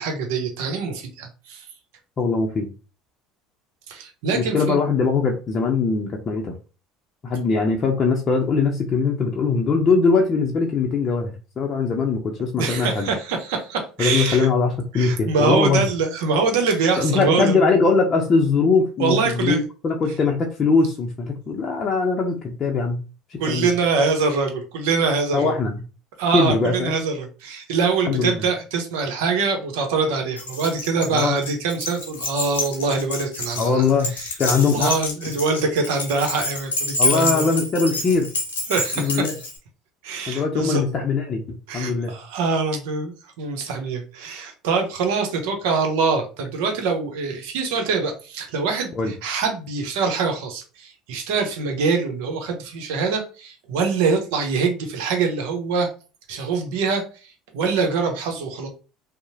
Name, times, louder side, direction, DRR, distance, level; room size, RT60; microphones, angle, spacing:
voice 1, 0.0-1.7 3.9-4.8 12.6-14.5 14.9-17.7 19.0-19.6 23.4-25.5 26.2-33.8 34.1-34.3 34.6-37.5 38.7-39.2 40.0-40.8 41.7-55.9 56.3-58.7, right 4 dB, 75° right, 4 dB, 0.7 m, -24 dB
voice 2, 2.2-2.7 4.3-6.5 7.2-13.1 14.0-15.9 17.0-23.0 23.3-23.7 25.3-25.8 26.3-27.0 28.1-28.4 31.1-31.4 33.6-34.9 37.0-38.3 39.0-39.3 40.3-42.1 49.0-49.1, left 4 dB, 40° left, 0 dB, 0.5 m, -21 dB
Keys jangling, 30.4-39.6, left 2 dB, 90° left, 0.8 m, -28 dB
2.8 x 2.0 x 2.7 m, 0.35 s
hypercardioid pair, 80°, 0 cm